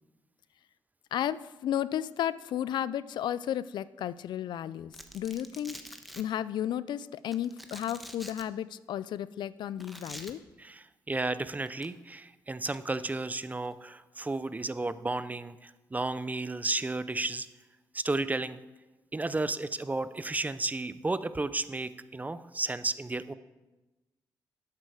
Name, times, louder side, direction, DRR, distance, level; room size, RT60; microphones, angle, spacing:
voice 1, 1.1-5.8 6.2-10.4, left 10 dB, 75° left, 18 dB, 0.4 m, -33 dB
Domestic sounds home sounds, 4.9-6.2 7.3-8.4 9.8-10.3 11.7-11.9 12.7-13.1, equal, ahead, 1.2 m, -45 dB
voice 2, 10.6-17.5 17.9-18.6 19.1-23.3, right 2 dB, 20° right, 14 dB, 0.6 m, -33 dB
11.5 x 8.3 x 4.8 m, 1.1 s
cardioid pair, 65°, 8 cm